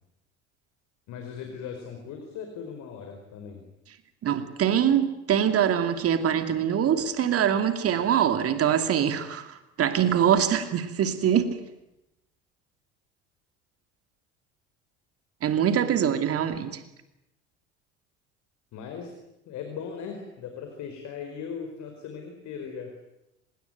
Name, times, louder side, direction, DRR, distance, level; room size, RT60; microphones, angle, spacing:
voice 1, 1.1-3.6 18.7-19.1 19.5-22.9, left 6 dB, 50° left, 4 dB, 4.8 m, -38 dB
voice 2, 4.2-11.6 15.4-16.8, right 9 dB, 40° right, 8 dB, 2.6 m, -24 dB
25.5 x 21.5 x 9.3 m, 0.90 s
figure-of-eight pair, 65°, 35 cm